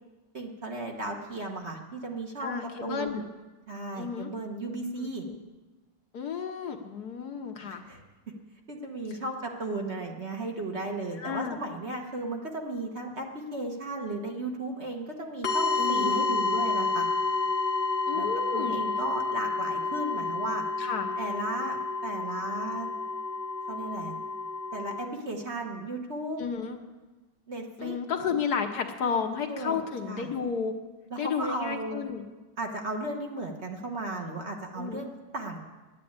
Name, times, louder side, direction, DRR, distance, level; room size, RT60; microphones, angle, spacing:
voice 1, 0.3-3.2 3.7-5.2 7.6-8.0 8.7-17.1 18.1-18.3 18.5-20.6 21.2-22.9 23.7-24.1 24.7-26.4 27.5-28.0 29.0-29.1 29.5-29.8 30.1-30.3 31.1-32.0 32.6-35.6, right 2 dB, 40° right, 1 dB, 1.4 m, -35 dB
voice 2, 2.4-3.2 3.9-4.3 5.0-5.4 6.1-7.8 9.1-9.2 11.2-11.6 15.8-16.3 18.1-18.8 20.8-21.1 26.4-26.8 27.8-30.7 31.2-32.2 34.7-35.1, left 6 dB, 60° left, 4 dB, 1.4 m, -32 dB
sound 1, 15.4-25.1, left 4 dB, 40° left, 1.1 m, -30 dB
11.5 x 9.7 x 8.7 m, 1.2 s
omnidirectional pair, 2.1 m